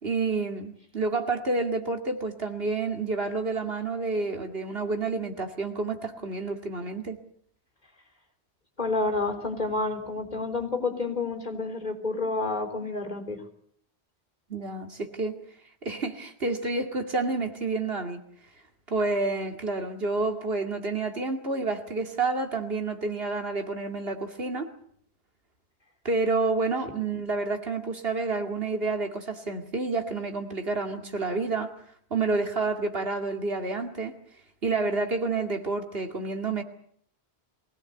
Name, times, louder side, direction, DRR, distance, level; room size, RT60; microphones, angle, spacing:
voice 1, 0.0-7.2 14.5-15.4 15.8-18.2 18.9-24.7 26.0-31.7 32.1-34.2 34.6-36.6, right 3 dB, 65° right, 5 dB, 2.6 m, -29 dB
voice 2, 8.8-13.4 27.0-27.1, left 3 dB, 45° left, 6 dB, 3.7 m, -29 dB
23.5 x 17.0 x 8.2 m, 0.63 s
omnidirectional pair, 1.1 m